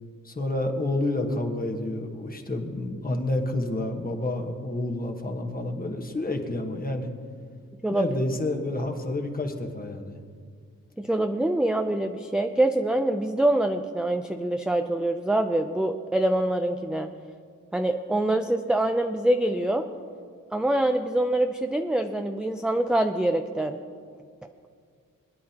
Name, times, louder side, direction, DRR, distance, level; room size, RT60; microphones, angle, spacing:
voice 1, 0.2-7.1 7.9-10.2, left 2 dB, 25° left, 3 dB, 1.3 m, -29 dB
voice 2, 11.0-17.1 17.7-19.8 20.5-23.8, right 1 dB, 5° right, 5 dB, 0.4 m, -25 dB
21.5 x 10.5 x 2.9 m, 2.1 s
wide cardioid pair, 130°, 32 cm